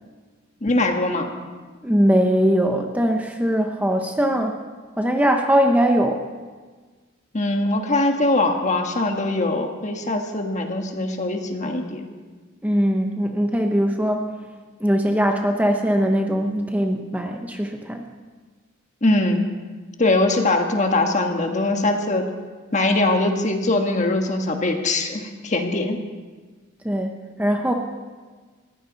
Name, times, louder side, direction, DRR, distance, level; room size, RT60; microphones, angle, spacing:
voice 1, 0.6-1.3 7.3-12.0 19.0-19.4 20.0-22.3 22.7-26.0, left 2 dB, 35° left, 4 dB, 1.4 m, -22 dB
voice 2, 1.8-4.5 5.0-6.2 12.6-14.3 14.8-18.0 26.8-27.1 27.4-27.7, equal, 5° right, 3 dB, 0.8 m, -20 dB
19.5 x 15.0 x 4.1 m, 1.4 s
head